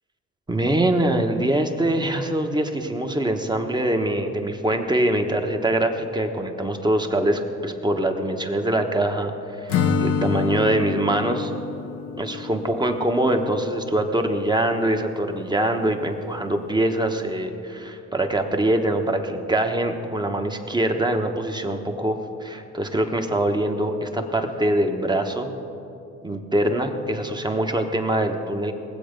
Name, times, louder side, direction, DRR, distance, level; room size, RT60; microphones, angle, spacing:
voice 1, 0.5-11.5 12.2-25.5 26.2-28.7, right 1 dB, 15° right, 5 dB, 1.2 m, -23 dB
Acoustic guitar / Strum, 9.7-13.6, left 6 dB, 90° left, 0.9 m, -27 dB
19.5 x 7.7 x 5.2 m, 2.8 s
cardioid pair, 90°, 30 cm